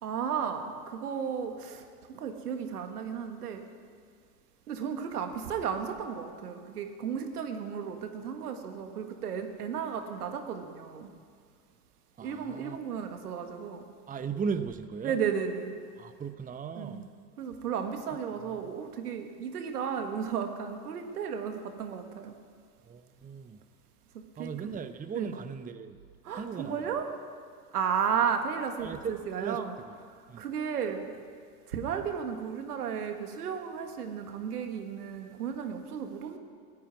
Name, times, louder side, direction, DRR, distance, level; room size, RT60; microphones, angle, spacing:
voice 1, 0.0-3.7 4.7-11.1 12.2-13.8 15.0-15.7 16.7-17.0 17.4-22.3 24.1-24.7 25.1-25.3 26.2-27.1 27.7-29.7 30.0-31.1 31.7-36.4, right 7 dB, 85° right, 6 dB, 1.6 m, -34 dB
voice 2, 12.2-12.8 14.1-15.2 16.0-17.0 18.1-18.2 22.9-23.6 24.4-26.0 26.4-26.8 28.8-29.6 29.9-30.0 30.3-30.4, right 6 dB, 20° right, 10 dB, 0.8 m, -37 dB
14.5 x 9.4 x 9.4 m, 2.1 s
hypercardioid pair, 80°, 45 cm